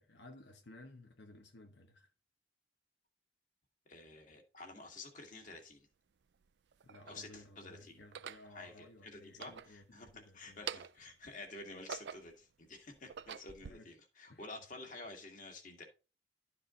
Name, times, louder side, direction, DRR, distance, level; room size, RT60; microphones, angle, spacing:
voice 1, 0.0-2.1 6.8-10.6 13.6-14.0 14.3-14.6, left 2 dB, 90° left, 1.0 m, -57 dB
voice 2, 3.9-5.9 7.1-8.0 8.5-15.8, left 2 dB, 45° left, 1.9 m, -50 dB
sound 1, 5.5-5.6 6.4-7.2 8.0-8.5 9.2-10.2 10.5-11.1 11.6-12.4 12.9-13.7, right 8 dB, 80° right, 0.4 m, -46 dB
11.5 x 4.8 x 3.8 m
head